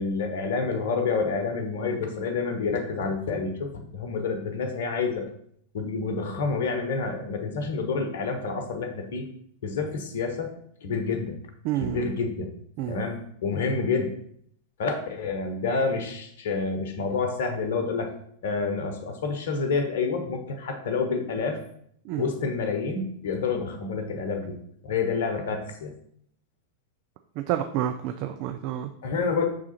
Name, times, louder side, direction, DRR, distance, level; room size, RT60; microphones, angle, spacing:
voice 1, 0.0-5.3 5.7-9.3 9.6-10.5 10.8-11.4 11.8-12.5 12.9-14.2 14.8-18.1 18.4-21.6 22.2-24.6 24.8-25.9 29.0-29.5, left 4 dB, 60° left, 6 dB, 0.9 m, -28 dB
voice 2, 11.6-12.0 12.8-13.0 22.0-22.3 27.4-28.9, right 12 dB, 45° right, 8 dB, 0.3 m, -29 dB
6.4 x 3.6 x 4.2 m, 0.66 s
figure-of-eight pair, 90°, 0 cm